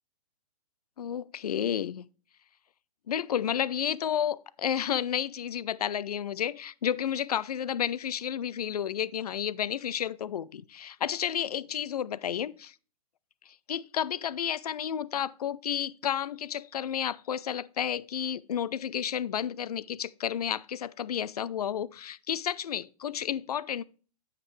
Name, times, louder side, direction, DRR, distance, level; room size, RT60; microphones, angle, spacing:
voice 1, 1.0-2.0 3.1-12.7 13.5-23.8, left 9 dB, 75° left, 0.5 m, -31 dB
9.0 x 5.7 x 3.2 m
hypercardioid pair, 120°, 20 cm